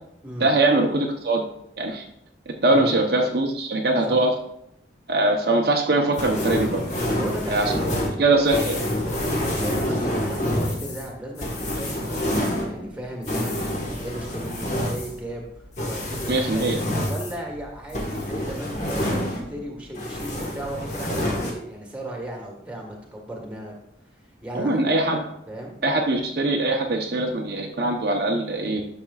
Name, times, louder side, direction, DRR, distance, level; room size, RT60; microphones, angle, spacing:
voice 1, 0.4-1.4 1.8-2.0 2.6-4.3 5.1-6.8 7.5-7.7 8.2-8.8 16.3-16.8 24.5-25.3 25.8-28.8, right 2 dB, 55° right, 1 dB, 0.8 m, -22 dB
voice 2, 2.7-3.1 4.1-4.2 7.1-7.9 9.4-15.4 15.8-16.7 17.0-23.7 24.4-24.8 25.5-25.7, right 1 dB, 5° right, -1 dB, 1.5 m, -35 dB
sound 1, 6.2-19.7 19.9-21.5, left 1 dB, 40° left, 1.4 m, -27 dB
11.5 x 6.5 x 2.4 m, 0.75 s
head